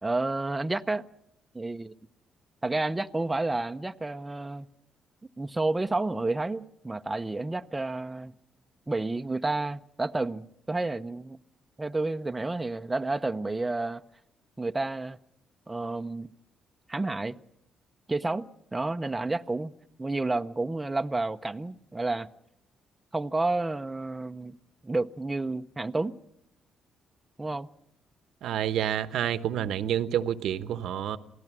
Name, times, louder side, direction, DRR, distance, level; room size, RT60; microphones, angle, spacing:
voice 1, 0.0-1.1 1.5-1.9 2.6-4.7 5.4-8.3 8.9-11.4 11.8-14.0 14.6-15.2 15.7-16.3 16.9-17.4 18.1-18.5 18.7-19.7 20.0-22.3 23.1-24.6 24.8-26.2 27.4-27.7, right 2 dB, 15° right, 0.7 m, -30 dB
voice 2, 28.4-31.2, right 10 dB, 80° right, 1.0 m, -28 dB
27.5 x 17.5 x 6.1 m
cardioid pair, 90°, 0 cm